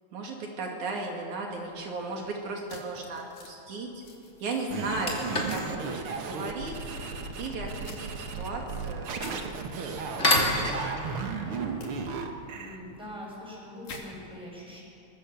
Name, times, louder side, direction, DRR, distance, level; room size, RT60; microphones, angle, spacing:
voice 1, 0.1-4.0 4.4-6.8 7.4-9.4 9.8-11.4, right 3 dB, 80° right, 0 dB, 3.7 m, -36 dB
voice 2, 1.4-2.2 12.5-14.8, equal, ahead, -3 dB, 6.8 m, -44 dB
sound 1, 1.7-2.0 4.0-4.1 4.6-13.4, left 2 dB, 25° left, 2.9 m, -33 dB
sound 2, 2.7-3.5 4.0-4.7 5.5-5.7 7.8-8.0 9.2-9.4 11.8-11.9 13.8-14.0, left 4 dB, 75° left, 3.9 m, -45 dB
sound 3, 4.7-12.8, right 5 dB, 55° right, 2.0 m, -35 dB
24.0 x 21.0 x 6.9 m, 2.7 s
omnidirectional pair, 3.4 m